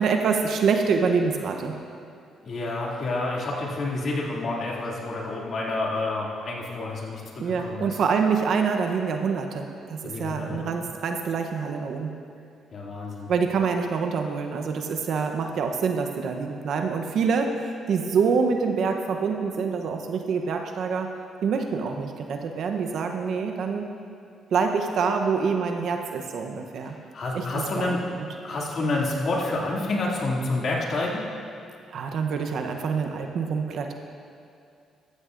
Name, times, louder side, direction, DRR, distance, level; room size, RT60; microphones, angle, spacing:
voice 1, 0.0-1.7 7.4-12.1 13.3-17.6 17.9-21.1 21.4-23.9 24.5-27.0 27.3-28.0 31.9-33.9, right 5 dB, 70° right, 4 dB, 0.8 m, -26 dB
voice 2, 2.5-8.0 10.0-10.7 12.7-13.3 27.1-28.0 28.4-31.2, left 2 dB, 55° left, -3 dB, 2.4 m, -29 dB
14.5 x 13.5 x 2.5 m, 2.5 s
cardioid pair, 90°, 0 cm